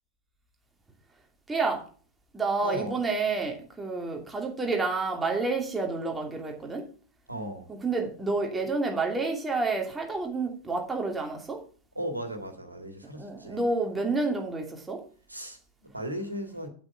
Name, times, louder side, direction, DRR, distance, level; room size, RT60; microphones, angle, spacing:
voice 1, 1.5-1.8 2.3-6.9 7.7-11.6 13.1-15.0, right 3 dB, 10° right, 2 dB, 2.7 m, -29 dB
voice 2, 2.6-3.0 7.3-7.7 12.0-13.6 15.3-16.7, right 1 dB, 85° right, 6 dB, 2.0 m, -36 dB
8.6 x 8.6 x 4.9 m, 0.42 s
figure-of-eight pair, 90°, 0 cm